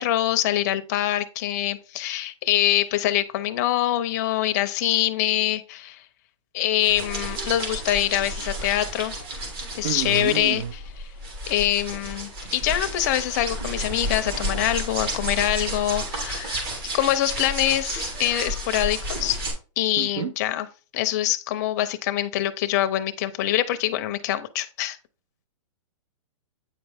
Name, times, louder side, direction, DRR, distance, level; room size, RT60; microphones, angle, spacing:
voice 1, 0.0-6.0 6.5-9.1 9.8-11.1 11.5-16.7 16.9-19.4 19.8-20.7 20.9-25.0, left 13 dB, 30° left, 0.5 m, -24 dB
sound 1, 6.8-19.5, right 1 dB, 45° right, 2.4 m, -32 dB
voice 2, 9.8-10.7 20.0-20.3, right 10 dB, 70° right, 0.6 m, -29 dB
8.5 x 4.5 x 3.4 m
hypercardioid pair, 165°, 17 cm